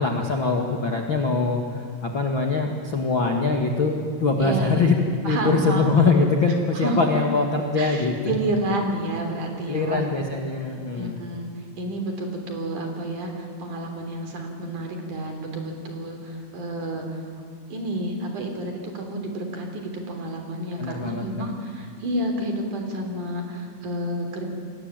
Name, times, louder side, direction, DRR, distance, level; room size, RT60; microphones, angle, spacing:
voice 1, 0.0-5.0 5.2-8.4 9.7-11.2 20.8-21.5, left 3 dB, 80° left, 2 dB, 1.1 m, -23 dB
voice 2, 4.4-4.9 5.2-5.9 6.7-7.0 7.8-10.0 11.0-11.5 11.8-17.2 17.7-24.5, right 1 dB, 45° right, 4 dB, 4.5 m, -30 dB
29.0 x 22.5 x 9.0 m, 2.4 s
omnidirectional pair, 5.5 m